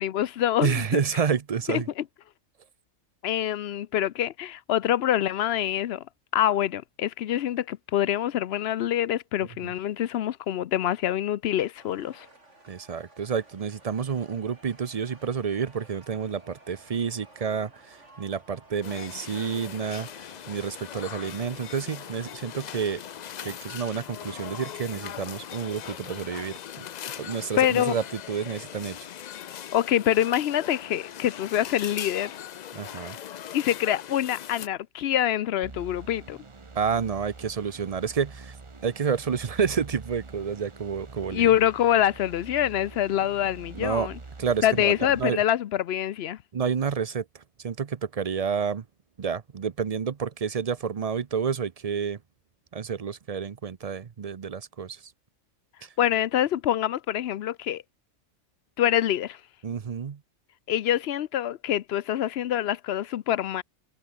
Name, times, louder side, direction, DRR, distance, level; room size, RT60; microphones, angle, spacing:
voice 1, 0.0-1.0 1.7-1.8 3.2-6.0 6.3-12.3 27.6-28.0 29.7-32.3 33.0-33.1 33.5-36.4 41.3-44.1 44.6-46.4 56.0-57.8 58.8-59.4 60.7-63.6, left 11 dB, 65° left, 0.8 m, -25 dB
voice 2, 0.6-1.9 9.6-9.7 12.7-23.0 23.4-26.9 27.2-29.0 32.7-33.2 36.7-38.6 38.8-41.5 43.7-44.1 44.4-45.4 46.5-48.8 49.2-52.2 52.7-55.0 55.8-55.9 59.6-60.2, right 6 dB, 40° right, 0.6 m, -29 dB
sound 1, 11.8-23.8, right 2 dB, 65° right, 5.9 m, -54 dB
sound 2, 18.8-34.7, left 10 dB, 90° left, 0.3 m, -40 dB
sound 3, 35.6-45.2, right 3 dB, 25° right, 1.1 m, -45 dB
omnidirectional pair, 1.3 m